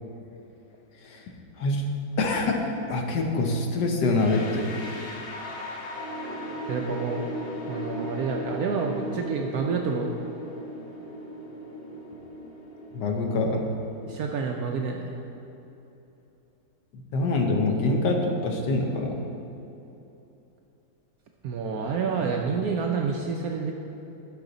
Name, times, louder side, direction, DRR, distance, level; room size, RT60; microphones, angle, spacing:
voice 1, 2.2-2.6 2.9-5.1 12.9-13.6 17.1-19.1, left 2 dB, 70° left, 3 dB, 1.5 m, -25 dB
sound 1, 4.1-15.0, equal, 45° left, 0.8 m, -37 dB
voice 2, 6.7-7.2 7.7-10.2 14.0-15.1 21.4-23.7, right 5 dB, 70° right, 2 dB, 0.9 m, -28 dB
10.5 x 6.2 x 4.0 m, 3.0 s
omnidirectional pair, 2.0 m